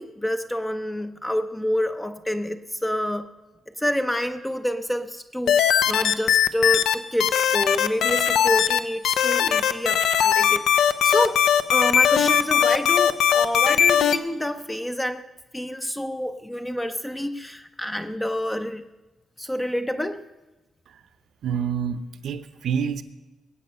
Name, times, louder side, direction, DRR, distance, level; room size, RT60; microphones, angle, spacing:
voice 1, 0.0-3.3 3.8-11.4 11.7-15.2 15.5-18.9 19.4-20.2, equal, 5° left, 7 dB, 0.5 m, -28 dB
sound 1, 5.5-6.9 7.2-8.8 9.0-14.2, left 8 dB, 85° left, 0.6 m, -19 dB
voice 2, 21.4-23.0, right 7 dB, 65° right, 11 dB, 0.8 m, -28 dB
21.5 x 8.7 x 5.5 m, 1.1 s
wide cardioid pair, 170°, 0 cm